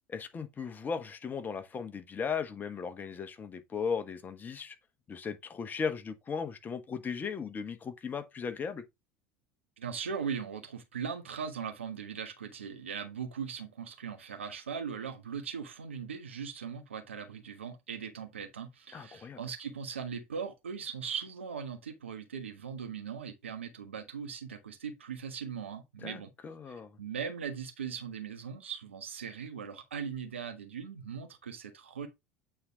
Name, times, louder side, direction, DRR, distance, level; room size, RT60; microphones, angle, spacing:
voice 1, 0.1-4.8 5.1-8.8 18.9-19.4 26.0-27.0, left 6 dB, 30° left, 1.3 m, -37 dB
voice 2, 9.8-26.3 26.7-32.1, right 6 dB, 80° right, 1.3 m, -39 dB
8.7 x 3.9 x 3.5 m
figure-of-eight pair, 70°, 6 cm